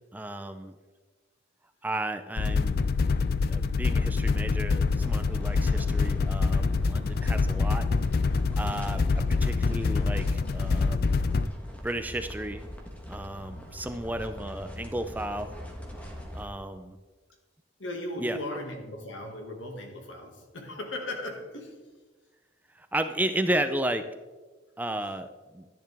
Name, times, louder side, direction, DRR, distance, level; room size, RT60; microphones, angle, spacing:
voice 1, 0.1-0.8 1.8-2.9 3.4-7.9 8.6-11.1 11.8-12.6 13.1-15.5 16.3-17.0 18.2-18.6 22.7-24.1 24.8-25.7, right 1 dB, 10° right, 9 dB, 0.4 m, -33 dB
sound 1, 2.4-11.5, left 4 dB, 50° left, 0.4 m, -26 dB
sound 2, 5.0-16.5, equal, 5° left, 1.3 m, -42 dB
voice 2, 17.8-21.8, left 1 dB, 80° left, 3 dB, 1.9 m, -37 dB
12.0 x 10.5 x 3.5 m, 1.3 s
head